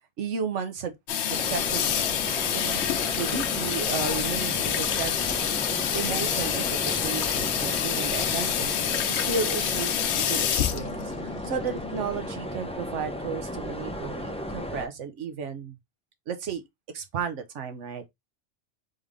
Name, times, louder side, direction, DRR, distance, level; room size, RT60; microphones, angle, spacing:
voice 1, 0.2-0.9 1.2-1.9 2.5-2.9 3.2-5.5 5.9-15.8 16.3-16.6 16.9-18.1, right 6 dB, 85° right, 1.2 m, -34 dB
Water tap faucet / Sink (filling or washing), 1.1-12.0, left 9 dB, 75° left, 0.8 m, -28 dB
sound 1, 1.3-14.9, equal, 10° left, 0.4 m, -35 dB
3.7 x 3.4 x 3.4 m
omnidirectional pair, 1.2 m